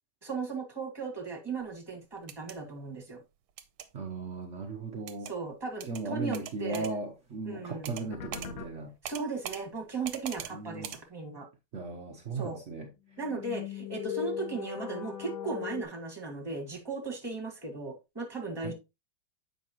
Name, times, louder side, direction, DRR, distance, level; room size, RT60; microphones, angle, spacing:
voice 1, 0.2-3.2 5.2-6.9 7.4-7.9 9.0-11.5 12.3-12.6 13.2-18.7, right 4 dB, 15° right, 1.6 m, -37 dB
sound 1, 2.2-2.6 3.6-3.9 5.1-5.3 5.8-6.0 6.3-6.9 7.8-8.1 8.3-8.5 9.0-9.6 10.0-10.5 10.8-11.0, right 10 dB, 75° right, 1.5 m, -41 dB
voice 2, 3.9-5.3 5.9-8.9 10.5-10.9 11.7-12.9 18.6-18.7, right 3 dB, 60° right, 0.7 m, -37 dB
sound 2, 8.1-8.7 13.1-15.8, left 10 dB, 70° left, 1.7 m, -38 dB
7.9 x 5.6 x 2.9 m
omnidirectional pair, 2.3 m